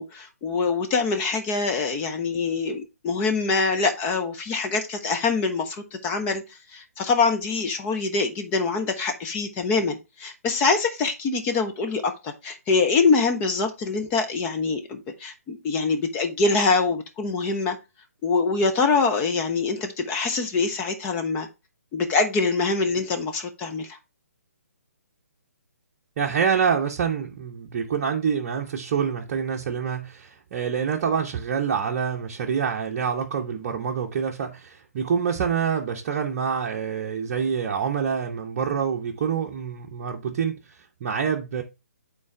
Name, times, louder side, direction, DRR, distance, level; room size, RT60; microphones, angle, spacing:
voice 1, 0.0-6.4 6.7-17.8 18.2-21.5 21.9-24.0, left 4 dB, 20° left, 0.8 m, -24 dB
voice 2, 26.2-41.6, right 7 dB, 35° right, 0.8 m, -26 dB
8.7 x 3.9 x 3.3 m
figure-of-eight pair, 135°, 8 cm